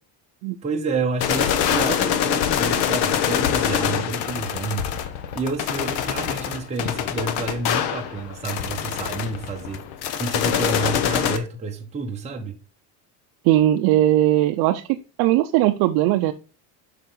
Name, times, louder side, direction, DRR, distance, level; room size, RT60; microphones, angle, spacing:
voice 1, 0.6-4.9 5.3-9.8 10.2-12.6, right 3 dB, 15° right, 1.0 m, -29 dB
sound 1, 1.2-11.4, left 9 dB, 65° left, 1.1 m, -24 dB
voice 2, 13.4-16.3, right 14 dB, 60° right, 0.6 m, -19 dB
7.1 x 5.9 x 3.8 m
cardioid pair, 155°, 43 cm